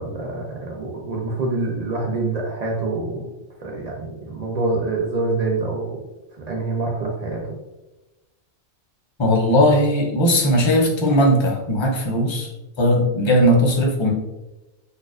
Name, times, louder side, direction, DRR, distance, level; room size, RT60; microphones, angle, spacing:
voice 1, 0.0-3.3 3.6-6.0 6.5-7.4, right 3 dB, 55° right, -2 dB, 0.4 m, -26 dB
voice 2, 9.2-12.5 12.8-14.1, equal, 35° left, -1 dB, 0.5 m, -18 dB
4.1 x 2.4 x 2.4 m, 1.0 s
omnidirectional pair, 1.2 m